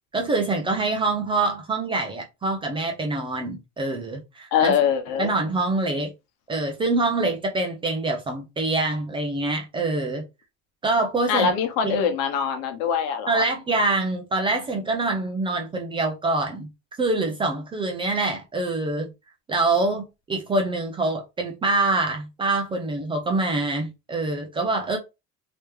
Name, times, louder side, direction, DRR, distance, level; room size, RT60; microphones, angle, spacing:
voice 1, 0.1-4.7 5.2-6.1 6.5-10.2 10.8-11.5 11.8-12.1 13.3-16.7 17.0-19.1 19.5-25.0, right 2 dB, 15° right, 0.3 m, -25 dB
voice 2, 4.5-5.3 11.3-13.4, left 7 dB, 80° left, 1.1 m, -23 dB
3.3 x 2.9 x 3.2 m
cardioid pair, 180°, 36 cm